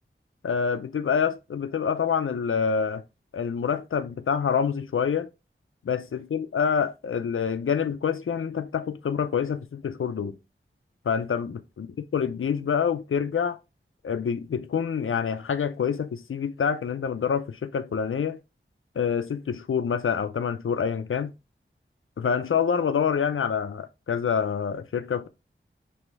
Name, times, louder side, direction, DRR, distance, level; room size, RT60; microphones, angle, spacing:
voice 1, 0.4-3.0 3.3-5.3 5.8-10.4 11.1-11.9 12.1-13.6 14.0-18.4 19.0-21.3 22.2-25.3, left 7 dB, 75° left, 0.4 m, -26 dB
3.1 x 3.0 x 4.6 m
wide cardioid pair, 55°, 21 cm